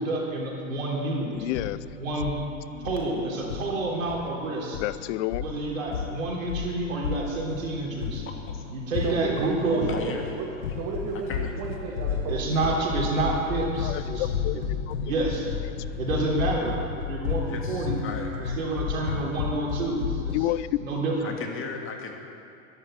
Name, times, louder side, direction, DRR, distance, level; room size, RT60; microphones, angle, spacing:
voice 1, 0.0-1.3 2.0-2.3 2.8-4.8 5.4-8.2 8.7-9.8 12.3-14.3 14.5-14.6 15.0-15.6 16.0-18.0 18.6-20.4 20.8-21.3, right 2 dB, 85° right, -3 dB, 3.7 m, -28 dB
sound 1, 1.3-20.5, left 6 dB, 90° left, 1.0 m, -33 dB
voice 2, 1.3-1.8 2.7-2.9 4.8-5.5 13.8-14.6 14.9-15.0 16.6-16.7 20.3-20.8, left 16 dB, 65° left, 17 dB, 0.6 m, -30 dB
voice 3, 9.0-9.3 9.6-10.5 10.7-12.4 12.6-12.7 18.3-18.5, right 4 dB, 45° right, -2 dB, 2.3 m, -34 dB
voice 4, 9.9-10.3 11.3-11.5 17.5-18.3 21.2-22.1, left 5 dB, 30° left, 3 dB, 2.1 m, -36 dB
11.0 x 11.0 x 8.0 m, 2.4 s
hypercardioid pair, 110°, 39 cm